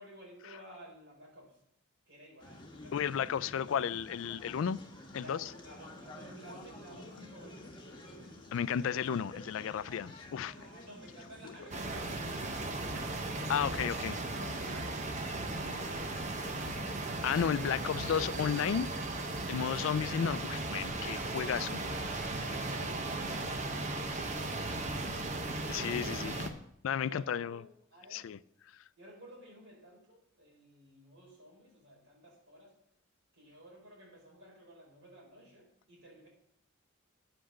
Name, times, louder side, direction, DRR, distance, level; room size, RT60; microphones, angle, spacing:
voice 1, 0.0-1.6 2.1-3.3 3.6-4.1 5.2-8.8 10.5-13.2 13.5-13.9 14.2-16.6 21.2-26.4 27.1-28.3 29.0-32.7 33.4-36.3, equal, 65° right, 4.8 m, -53 dB
sound 1, 2.4-18.1, left 1 dB, 20° left, 1.3 m, -51 dB
voice 2, 2.9-4.8 5.1-5.5 8.5-10.7 11.4-11.5 13.5-14.2 17.2-18.9 19.5-21.8 25.7-26.4 26.8-27.6 28.1-28.4, left 8 dB, 75° left, 0.3 m, -33 dB
sound 2, 11.7-26.5, right 2 dB, 35° right, 0.9 m, -37 dB
9.9 x 5.8 x 6.3 m
head